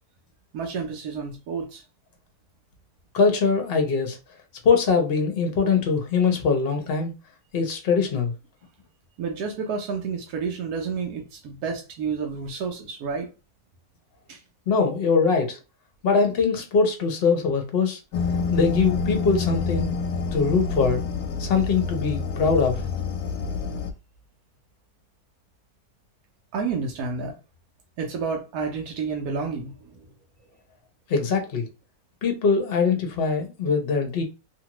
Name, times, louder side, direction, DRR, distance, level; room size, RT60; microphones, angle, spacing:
voice 1, 0.5-1.8 9.2-13.3 14.3-14.4 26.5-27.4 28.0-30.1, right 5 dB, 80° right, 1.1 m, -30 dB
voice 2, 3.1-4.2 4.6-7.1 7.5-8.3 14.7-15.6 16.0-18.0 18.5-19.9 20.3-21.0 21.4-22.8 31.1-31.6 32.2-34.2, left 5 dB, 50° left, 0.8 m, -22 dB
sound 1, 18.1-23.9, left 4 dB, 90° left, 1.1 m, -27 dB
2.8 x 2.5 x 2.9 m
omnidirectional pair, 1.6 m